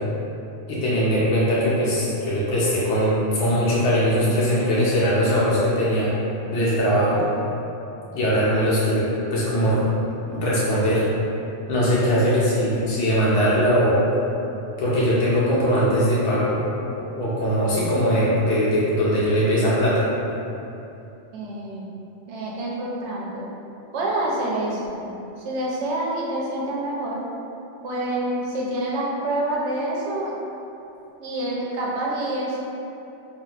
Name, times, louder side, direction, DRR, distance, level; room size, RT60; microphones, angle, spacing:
voice 1, 0.7-6.1 6.5-7.2 8.1-9.8 10.3-11.0 11.7-14.0 14.8-16.6 17.0-20.1, equal, 80° left, -8 dB, 0.9 m, -21 dB
voice 2, 21.3-22.0 22.3-23.5 23.9-27.3 27.8-30.3 31.2-32.6, right 1 dB, 80° right, -4 dB, 0.9 m, -27 dB
3.4 x 2.4 x 2.3 m, 2.9 s
omnidirectional pair, 1.2 m